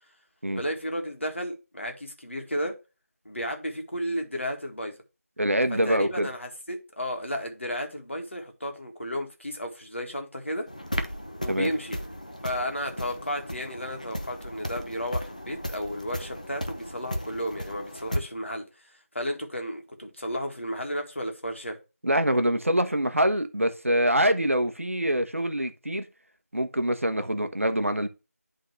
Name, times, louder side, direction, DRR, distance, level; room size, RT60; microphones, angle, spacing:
voice 1, 0.6-2.7 3.3-5.0 5.8-10.7 11.4-12.0 12.4-21.8, equal, 50° left, 1.9 m, -33 dB
voice 2, 5.4-6.3 11.5-11.7 22.0-26.1 26.5-28.1, equal, 55° right, 1.1 m, -25 dB
sound 1, 10.7-18.2, equal, 30° left, 0.6 m, -35 dB
11.0 x 3.8 x 3.4 m
figure-of-eight pair, 175°, 9 cm